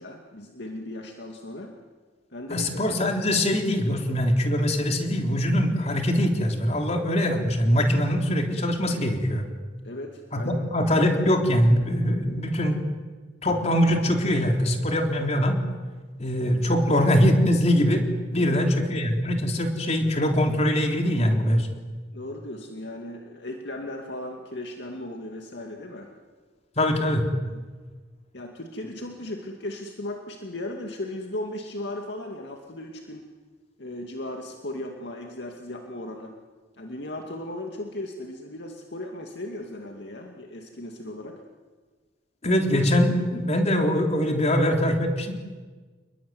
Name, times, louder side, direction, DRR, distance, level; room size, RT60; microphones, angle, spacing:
voice 1, 0.0-1.8 2.3-2.9 9.8-10.6 16.7-17.0 18.4-18.8 22.1-26.1 27.5-27.7 28.3-33.3 33.8-36.4 36.7-41.4, left 1 dB, 70° left, 2 dB, 2.4 m, -37 dB
voice 2, 2.5-9.5 10.3-12.8 13.4-15.6 16.2-18.0 18.3-21.7 26.8-27.2 42.4-45.3, equal, 40° left, 3 dB, 3.8 m, -22 dB
29.0 x 21.5 x 9.5 m, 1.4 s
head